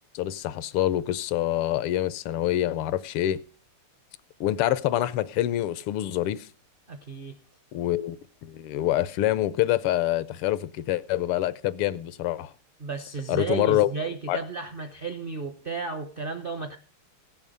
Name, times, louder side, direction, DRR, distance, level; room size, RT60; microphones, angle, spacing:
voice 1, 0.1-3.4 4.4-6.5 7.7-12.5 13.3-13.9 14.3-14.4, left 13 dB, 85° left, 1.6 m, -26 dB
voice 2, 6.9-7.4 12.8-16.8, right 4 dB, 55° right, 0.6 m, -33 dB
17.0 x 7.1 x 5.3 m
omnidirectional pair, 2.4 m